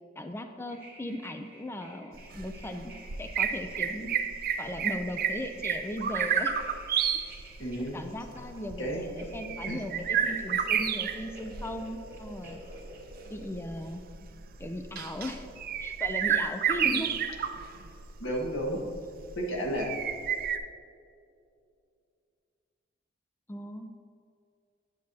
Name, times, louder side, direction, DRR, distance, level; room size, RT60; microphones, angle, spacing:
voice 1, 0.2-2.9 3.2-4.2 4.6-6.5 7.1-7.4 7.9-12.6 13.3-14.1 14.6-15.5 15.8-17.2 23.5-23.9, left 1 dB, 15° left, 6 dB, 0.3 m, -38 dB
sound 1, 0.7-13.5, right 1 dB, 10° right, 1.7 m, -50 dB
sound 2, 2.1-20.6, right 8 dB, 50° right, 0.5 m, -31 dB
voice 2, 7.6-8.0 8.8-9.1 9.7-9.8 16.8-17.0 18.2-18.9 19.3-19.9, equal, 85° left, -1 dB, 1.5 m, -32 dB
9.4 x 7.9 x 2.8 m, 2.4 s
head